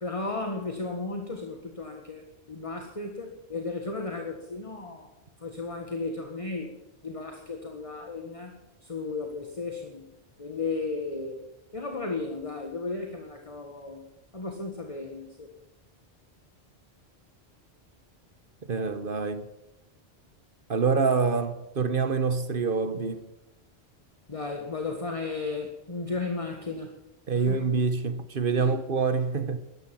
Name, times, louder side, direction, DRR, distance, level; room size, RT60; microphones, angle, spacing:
voice 1, 0.0-5.1 5.4-6.8 7.0-10.1 10.4-11.5 11.7-14.1 14.3-15.5 24.3-26.9 27.4-27.7 28.6-28.7, left 3 dB, 30° left, 1.6 m, -34 dB
voice 2, 18.6-19.5 20.7-23.3 27.3-29.6, right 5 dB, 55° right, 1.2 m, -26 dB
13.5 x 11.5 x 7.5 m
omnidirectional pair, 1.1 m